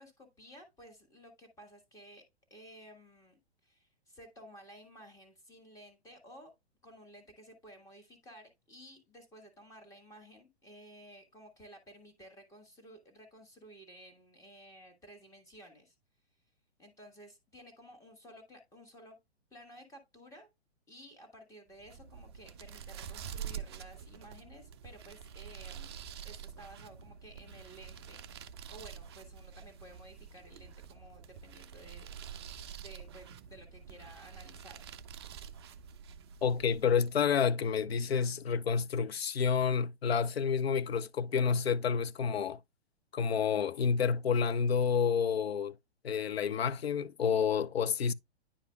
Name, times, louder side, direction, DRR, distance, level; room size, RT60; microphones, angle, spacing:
voice 1, 0.0-2.2 2.5-6.5 6.8-15.9 16.8-19.2 19.5-20.5 20.9-28.2 28.7-34.9, right 1 dB, 10° left, 1.5 m, -54 dB
sound 1, 21.7-37.2, right 8 dB, 25° right, 0.4 m, -47 dB
voice 2, 36.4-42.6 43.1-45.8 46.0-48.1, left 6 dB, 70° left, 0.5 m, -29 dB
9.9 x 4.8 x 2.3 m
figure-of-eight pair, 110°, 32 cm